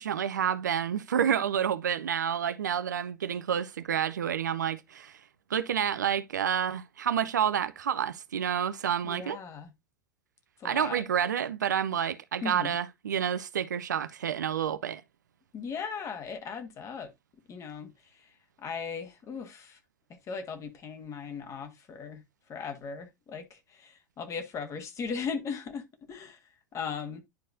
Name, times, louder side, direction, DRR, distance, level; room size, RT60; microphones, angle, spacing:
voice 1, 0.0-5.2 5.5-9.4 10.6-15.0, right 8 dB, 70° right, 0.5 m, -29 dB
voice 2, 9.0-9.7 10.6-11.0 12.4-12.8 15.5-17.1 17.5-19.8 20.1-22.2 22.5-27.2, left 6 dB, 30° left, 1.5 m, -38 dB
10.5 x 4.5 x 2.7 m
figure-of-eight pair, 80°, 10 cm